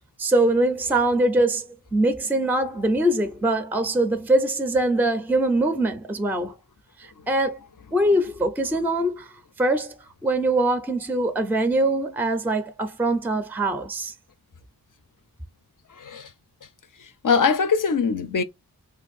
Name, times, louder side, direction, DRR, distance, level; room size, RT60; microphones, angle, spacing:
voice 1, 0.2-6.5 7.0-7.6 7.9-10.0 10.2-14.1, right 1 dB, 5° right, 0.4 m, -23 dB
voice 2, 16.0-16.3 17.0-18.4, left 5 dB, 55° left, 0.5 m, -22 dB
2.6 x 2.5 x 4.0 m
wide cardioid pair, 65°, 39 cm